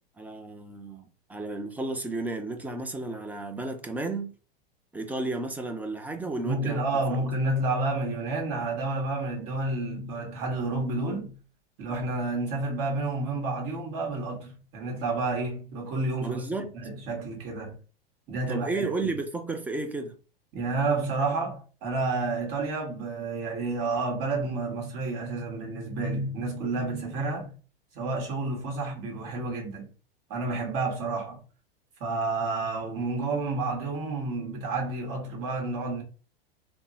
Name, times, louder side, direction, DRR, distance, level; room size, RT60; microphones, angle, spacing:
voice 1, 0.2-1.0 1.3-4.3 4.9-6.8 16.2-16.7 18.5-20.1, right 2 dB, 5° right, 0.3 m, -32 dB
voice 2, 6.4-11.3 11.8-16.5 16.7-17.8 18.3-18.8 20.5-27.5 27.9-29.9 30.3-31.4 32.0-36.0, right 3 dB, 45° right, 1.5 m, -30 dB
3.5 x 2.0 x 2.7 m
hypercardioid pair, 100°, 30 cm